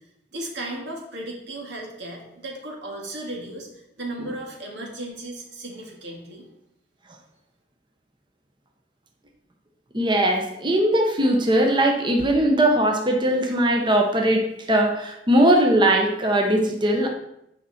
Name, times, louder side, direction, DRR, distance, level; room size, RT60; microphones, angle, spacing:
voice 1, 0.3-3.7 4.0-6.5, right 1 dB, 85° right, 0 dB, 2.0 m, -35 dB
voice 2, 9.9-17.1, right 1 dB, 25° right, 2 dB, 0.9 m, -20 dB
9.3 x 5.7 x 4.2 m, 0.81 s
head